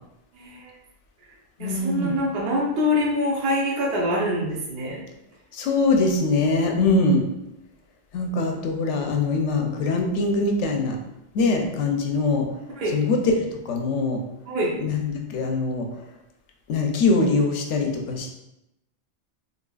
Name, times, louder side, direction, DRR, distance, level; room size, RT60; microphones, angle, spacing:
voice 1, 0.4-0.7 1.6-5.0 12.8-12.9 14.5-14.7, left 1 dB, 60° right, -2 dB, 0.9 m, -25 dB
voice 2, 1.6-2.2 5.5-7.2 8.1-11.0 11.3-12.5 12.9-14.2 14.8-15.9 16.7-18.3, left 3 dB, 85° left, 3 dB, 0.9 m, -23 dB
3.9 x 2.7 x 2.3 m, 0.89 s
omnidirectional pair, 1.2 m